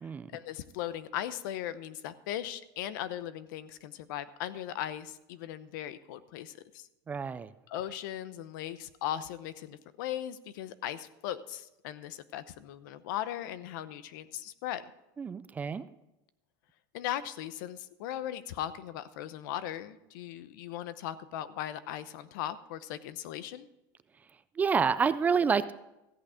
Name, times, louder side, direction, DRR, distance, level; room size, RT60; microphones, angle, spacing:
voice 1, 0.0-6.9 7.7-14.8 16.9-23.7, left 11 dB, 80° left, 14 dB, 0.8 m, -38 dB
voice 2, 7.1-7.5 15.2-15.9 24.6-25.7, right 6 dB, 15° right, 14 dB, 0.3 m, -28 dB
14.0 x 8.6 x 5.0 m, 0.92 s
cardioid pair, 160°, 10 cm